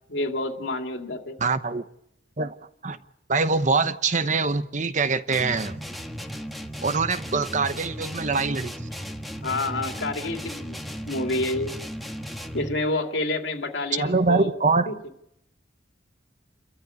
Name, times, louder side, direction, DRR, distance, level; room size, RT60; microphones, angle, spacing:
voice 1, 0.1-1.4 9.4-11.7 12.5-14.5 14.9-15.0, left 2 dB, 80° left, 2.6 m, -28 dB
voice 2, 1.4-1.9 2.4-2.5 2.8-3.0 3.3-5.8 6.8-8.9 14.0-14.9, right 4 dB, 40° right, 1.0 m, -24 dB
sound 1, 5.3-12.8, equal, ahead, 1.5 m, -35 dB
29.0 x 13.5 x 9.7 m
head